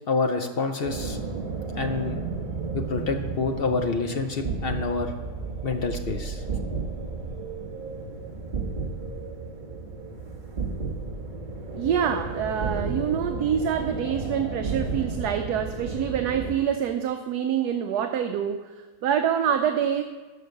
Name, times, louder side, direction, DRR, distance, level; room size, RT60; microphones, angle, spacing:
voice 1, 0.1-1.2 1.8-2.2 2.7-5.1 5.6-6.4, left 4 dB, 60° left, 6 dB, 0.6 m, -27 dB
sound 1, 0.8-16.6, right 4 dB, 30° right, 1.2 m, -33 dB
voice 2, 11.7-20.0, right 8 dB, 75° right, 7 dB, 1.1 m, -26 dB
13.0 x 5.1 x 6.6 m, 1.3 s
omnidirectional pair, 1.8 m